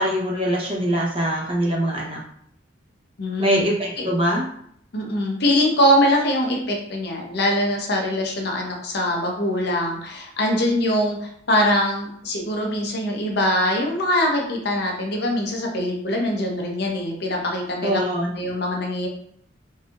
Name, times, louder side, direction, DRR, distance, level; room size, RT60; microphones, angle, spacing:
voice 1, 0.0-2.2 3.4-4.5 17.8-18.3, equal, 30° right, -3 dB, 0.8 m, -23 dB
voice 2, 3.2-3.6 4.9-18.0 18.4-19.1, left 1 dB, 60° left, 1 dB, 0.7 m, -22 dB
4.1 x 2.6 x 2.4 m, 0.67 s
head